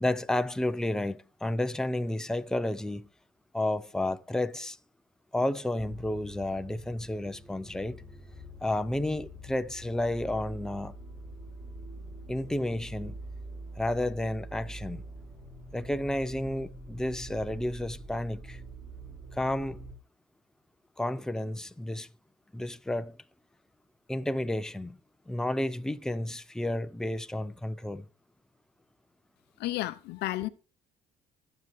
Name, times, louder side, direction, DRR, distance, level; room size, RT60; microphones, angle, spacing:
voice 1, 0.0-3.1 3.5-4.8 5.3-8.0 8.6-10.9 12.3-13.2 13.8-15.0 15.7-18.6 19.3-19.8 21.0-22.1 22.5-23.2 24.1-25.0 25.3-28.0, left 1 dB, 5° left, 0.6 m, -31 dB
sound 1, 5.8-19.9, right 1 dB, 20° right, 5.5 m, -45 dB
voice 2, 29.6-30.5, left 16 dB, 80° left, 0.7 m, -32 dB
23.0 x 7.9 x 3.2 m
cardioid pair, 110°, 17 cm